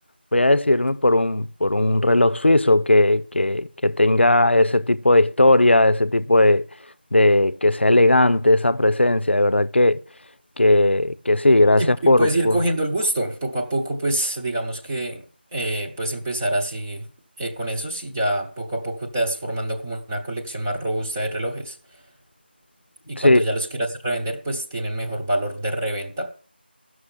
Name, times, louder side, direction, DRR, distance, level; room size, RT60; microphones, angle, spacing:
voice 1, 0.3-6.7 7.1-10.0 10.6-12.6 23.2-23.4, left 1 dB, 85° left, 0.6 m, -17 dB
voice 2, 11.8-15.2 15.5-17.1 17.4-21.8 23.1-26.3, right 1 dB, 15° right, 0.9 m, -26 dB
11.5 x 6.3 x 7.4 m
figure-of-eight pair, 170°, 6 cm